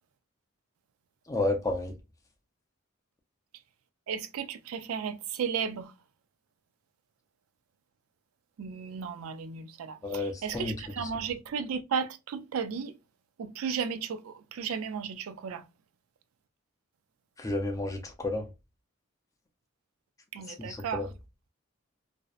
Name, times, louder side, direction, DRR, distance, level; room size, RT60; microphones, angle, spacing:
voice 1, 1.3-1.9 10.0-11.1 17.4-18.5 20.5-21.1, left 2 dB, 15° left, 0.4 m, -32 dB
voice 2, 4.1-5.9 8.6-12.9 13.4-15.6 20.3-21.1, right 6 dB, 85° right, 0.4 m, -34 dB
2.6 x 2.1 x 2.3 m
head